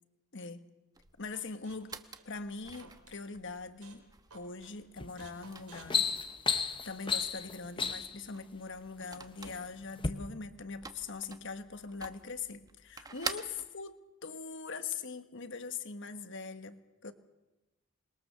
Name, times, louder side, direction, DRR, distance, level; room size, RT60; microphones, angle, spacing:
voice 1, 0.3-0.6 1.2-2.0 2.2-4.0 4.3-6.0 6.8-17.1, left 4 dB, 55° left, 10 dB, 1.5 m, -42 dB
sound 1, 0.9-13.7, right 4 dB, 15° right, 1.1 m, -48 dB
sound 2, 1.3-3.2 3.6-4.0 4.3-4.8 5.2-6.8, right 5 dB, 90° right, 4.7 m, -57 dB
sound 3, 5.0-5.2 5.6-8.2 9.0-9.6 10.0-10.1, left 5 dB, 20° left, 1.1 m, -32 dB
27.0 x 22.0 x 6.9 m, 1.0 s
head